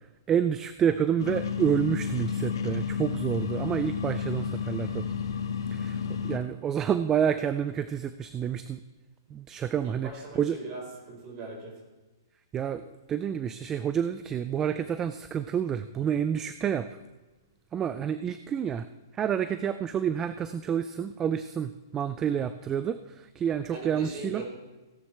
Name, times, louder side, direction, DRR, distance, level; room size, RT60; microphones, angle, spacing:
voice 1, 0.3-5.1 5.7-6.0 6.2-8.8 9.3-10.6 12.5-17.0 17.7-18.9 19.1-24.4, right 8 dB, 20° right, 12 dB, 0.4 m, -29 dB
sound 1, 1.2-6.4, left 7 dB, 75° left, 1.7 m, -31 dB
voice 2, 9.8-11.7 23.7-24.4, right 2 dB, 35° right, 0 dB, 4.5 m, -40 dB
16.0 x 11.0 x 3.4 m, 1.2 s
hypercardioid pair, 135°, 2 cm